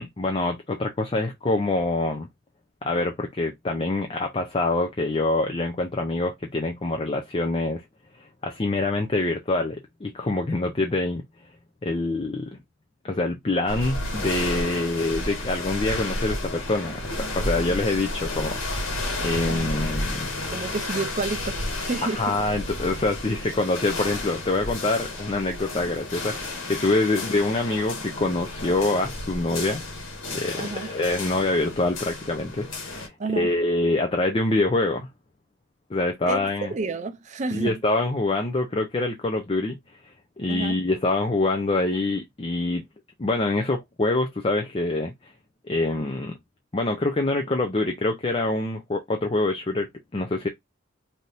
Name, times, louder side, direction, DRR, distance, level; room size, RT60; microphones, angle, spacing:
voice 1, 0.0-2.3 2.8-7.8 8.2-11.2 11.8-12.6 13.0-20.3 22.0-29.8 30.3-35.1 35.9-36.7 37.5-39.8 40.0-42.8 43.2-45.3 45.7-46.3 46.7-50.5, left 2 dB, 30° left, 0.5 m, -25 dB
sound 1, 13.7-33.1, left 2 dB, 90° left, 1.3 m, -32 dB
voice 2, 19.5-20.1 20.5-22.4 23.3-23.4 30.6-30.9 33.2-33.5 36.3-37.8 40.5-40.8, right 3 dB, 40° right, 0.5 m, -31 dB
3.4 x 2.8 x 2.6 m
head